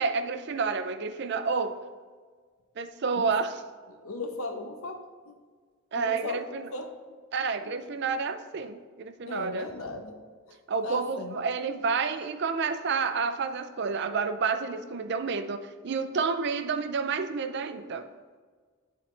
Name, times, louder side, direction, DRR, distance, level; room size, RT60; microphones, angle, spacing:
voice 1, 0.0-1.8 2.8-3.6 5.9-6.7 7.3-9.7 10.7-18.1, right 5 dB, 55° right, 10 dB, 0.5 m, -29 dB
voice 2, 3.9-5.3 5.9-7.0 7.8-7.9 9.2-10.2 10.5-10.6 10.8-11.4, left 2 dB, 85° left, 4 dB, 0.9 m, -37 dB
11.0 x 4.1 x 3.3 m, 1.5 s
head